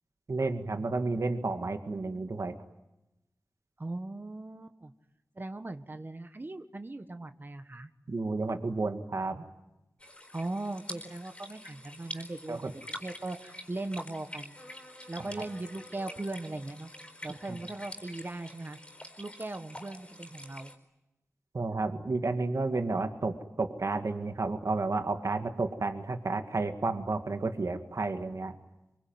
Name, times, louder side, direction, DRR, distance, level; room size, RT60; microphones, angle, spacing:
voice 1, 0.3-2.5 8.1-9.5 12.5-12.7 21.5-28.6, right 3 dB, 70° right, 7 dB, 2.0 m, -31 dB
voice 2, 3.8-4.9 5.3-7.9 10.3-12.6 12.9-14.6 15.1-16.9 17.2-18.8 19.2-20.7, right 2 dB, 40° right, 8 dB, 1.4 m, -39 dB
sound 1, 10.0-20.8, left 1 dB, 20° left, 4.4 m, -46 dB
25.0 x 23.5 x 9.4 m, 0.93 s
wide cardioid pair, 60°, 5 cm